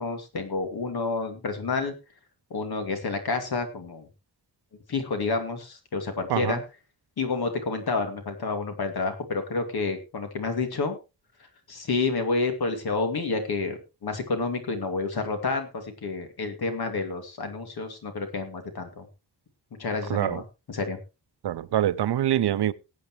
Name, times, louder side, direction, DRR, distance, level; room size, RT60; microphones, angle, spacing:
voice 1, 0.0-1.9 2.5-4.1 4.9-6.6 7.2-11.0 11.7-19.1 19.8-21.0, left 3 dB, 70° left, 2.5 m, -29 dB
voice 2, 20.1-20.4 21.4-22.7, right 11 dB, 85° right, 0.7 m, -25 dB
19.0 x 8.6 x 3.1 m
wide cardioid pair, 175°, 39 cm